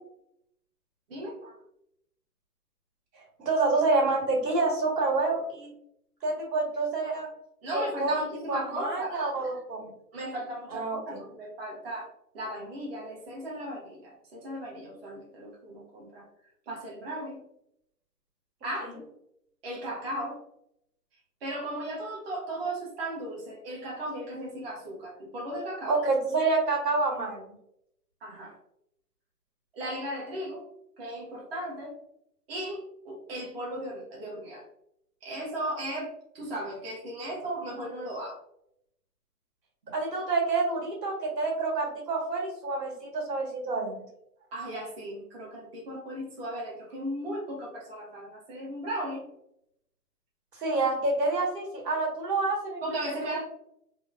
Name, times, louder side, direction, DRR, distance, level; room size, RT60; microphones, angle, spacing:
voice 1, 1.1-1.6 7.6-9.2 10.1-12.1 12.3-16.2 16.7-17.4 18.6-18.9 19.6-20.4 21.4-26.0 28.2-28.6 29.7-30.6 31.0-31.9 32.5-34.6 35.2-36.1 36.3-38.4 44.5-49.2 52.8-53.5, right 1 dB, 40° right, -4 dB, 0.7 m, -36 dB
voice 2, 3.4-5.7 6.2-7.3 7.7-9.9 10.7-11.2 18.8-18.9 25.9-27.4 39.9-44.0 50.6-52.8 53.2-53.5, right 3 dB, 85° right, -2 dB, 1.3 m, -28 dB
2.9 x 2.1 x 2.3 m, 0.76 s
hypercardioid pair, 150°, 48 cm